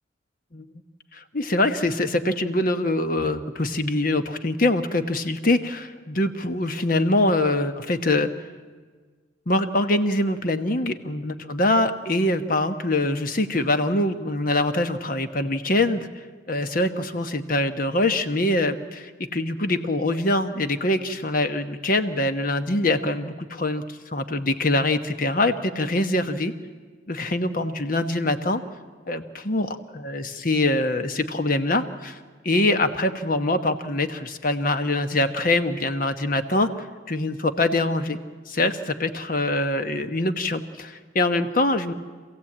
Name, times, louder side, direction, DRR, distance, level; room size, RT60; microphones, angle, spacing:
voice 1, 1.1-8.3 9.5-16.1 16.5-26.5 27.1-28.6 29.1-32.2 32.4-38.2 38.5-41.9, left 2 dB, 45° left, 9 dB, 1.2 m, -24 dB
26.0 x 16.0 x 8.7 m, 1.5 s
head